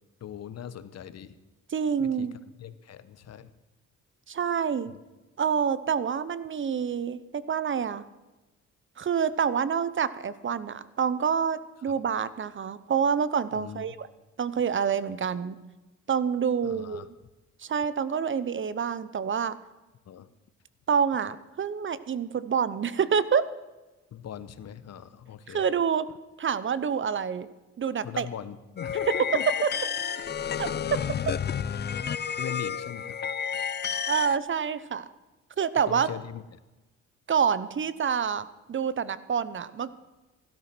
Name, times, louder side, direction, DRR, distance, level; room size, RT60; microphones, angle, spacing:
voice 1, 0.2-1.4 2.0-2.3 2.6-3.5 4.9-5.0 13.5-13.8 16.6-17.1 20.1-20.3 24.1-25.6 28.0-29.4 30.5-30.6 32.4-33.2 35.9-36.4, left 9 dB, 60° left, 14 dB, 1.1 m, -39 dB
voice 2, 1.7-2.4 4.3-4.9 5.4-8.0 9.0-14.1 14.4-15.6 16.1-17.1 17.6-19.6 20.9-23.5 25.5-26.1 26.4-27.5 27.8-28.3 29.6-29.7 30.6-30.7 31.3-31.4 34.1-35.1 35.6-36.1 37.3-39.9, right 7 dB, 40° right, 16 dB, 0.9 m, -27 dB
sound 1, 28.8-34.4, left 7 dB, 35° left, 0.6 m, -31 dB
16.5 x 12.0 x 6.1 m, 1.1 s
cardioid pair, 90°, 30 cm